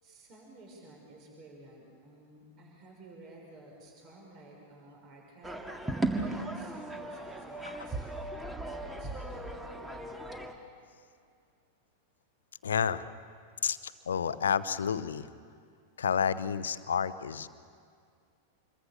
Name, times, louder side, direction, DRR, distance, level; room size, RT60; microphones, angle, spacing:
voice 1, 0.0-10.0 13.4-13.7, right 2 dB, 35° right, 0 dB, 5.9 m, -53 dB
sound 1, 5.4-10.5, right 2 dB, 10° right, 2.1 m, -36 dB
voice 2, 12.6-13.1 13.6-15.3 16.0-17.5, left 7 dB, 65° left, 15 dB, 0.8 m, -30 dB
27.5 x 22.5 x 7.0 m, 2.2 s
figure-of-eight pair, 90°, 0 cm